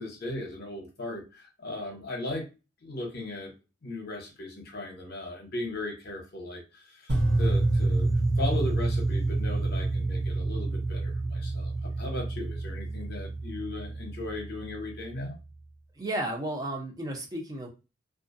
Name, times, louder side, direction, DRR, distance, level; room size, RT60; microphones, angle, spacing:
voice 1, 0.0-2.5 2.8-3.5 3.8-7.1 7.4-15.4, left 2 dB, 50° left, 1 dB, 0.8 m, -37 dB
sound 1, 7.1-15.2, right 2 dB, 55° right, 0.8 m, -28 dB
voice 2, 16.0-17.7, right 1 dB, 20° right, 1 dB, 0.5 m, -33 dB
2.4 x 2.1 x 2.5 m, 0.29 s
head